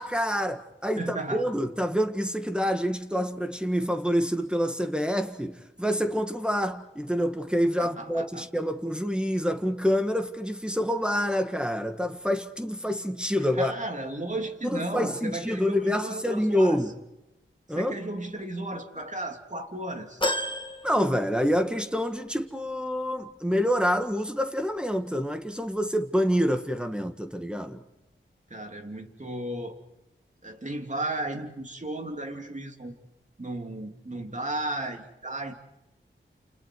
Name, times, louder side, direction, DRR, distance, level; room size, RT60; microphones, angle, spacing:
voice 1, 0.0-13.7 14.6-16.9 17.7-17.9 20.8-27.8, equal, 5° right, 1.7 m, -27 dB
voice 2, 1.0-1.5 7.8-8.4 13.5-16.8 17.7-20.2 28.5-29.8 30.4-33.0 33.4-35.5, right 2 dB, 35° right, 3.0 m, -34 dB
sound 1, 20.2-21.9 22.3-22.4 23.6-23.7, left 1 dB, 25° left, 2.3 m, -32 dB
29.5 x 29.0 x 4.7 m
cardioid pair, 50°, 20 cm